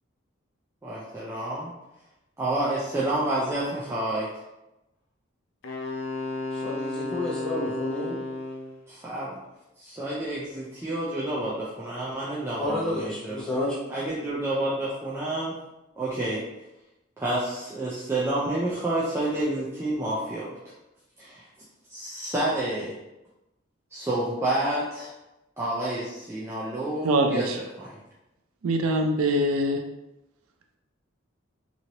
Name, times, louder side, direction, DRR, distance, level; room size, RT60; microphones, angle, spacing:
voice 1, 0.8-1.7 2.4-4.3 8.9-9.4 9.8-13.5 13.9-15.6 16.0-16.4 17.2-20.7 21.2-21.5 21.9-23.0 23.9-25.1 25.6-28.0, right 1 dB, 10° right, -8 dB, 0.4 m, -29 dB
Wind instrument woodwind instrument, 5.6-8.8, left 2 dB, 65° left, 0.5 m, -33 dB
voice 2, 6.5-8.2 12.6-13.8, left 2 dB, 5° left, -8 dB, 0.9 m, -30 dB
voice 3, 27.0-27.6 28.6-29.8, right 1 dB, 90° right, 4 dB, 0.4 m, -23 dB
3.0 x 2.7 x 2.8 m, 0.97 s
head